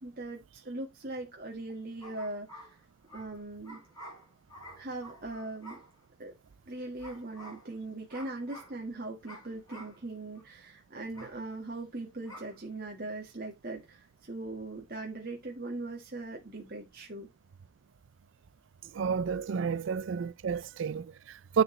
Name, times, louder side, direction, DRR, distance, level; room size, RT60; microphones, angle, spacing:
voice 1, 0.0-2.8 3.1-3.8 4.7-5.8 6.2-6.3 6.7-17.3, right 2 dB, 45° right, 1.6 m, -40 dB
sound 1, 2.0-6.2 7.0-7.8 8.1-8.8 9.3-10.0 10.3-10.4 11.1-11.4 12.3-12.6, right 1 dB, 20° left, 5.7 m, -50 dB
voice 2, 18.9-21.6, right 6 dB, 65° right, 0.4 m, -30 dB
9.7 x 4.9 x 3.1 m
head